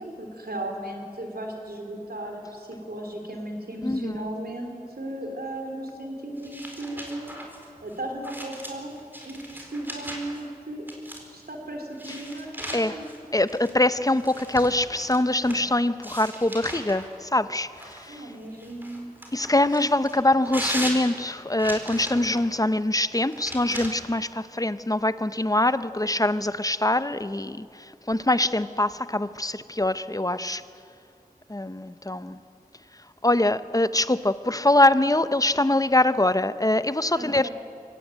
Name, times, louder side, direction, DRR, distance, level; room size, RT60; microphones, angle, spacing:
voice 1, 0.0-7.4 7.8-9.0 9.3-10.9 11.3-13.1 18.1-19.1 37.1-37.5, right 1 dB, 85° right, 2 dB, 3.7 m, -36 dB
voice 2, 3.8-4.2 12.7-12.9 13.3-18.3 19.3-30.6 31.5-32.4 33.2-37.5, left 1 dB, 25° left, 13 dB, 0.8 m, -23 dB
sound 1, 6.4-10.4 10.9-11.4 11.9-15.6 16.0-17.1 17.8-22.5 23.3-23.9, equal, 15° right, 4.5 m, -38 dB
24.0 x 16.0 x 9.3 m, 2.5 s
wide cardioid pair, 45°, 15 cm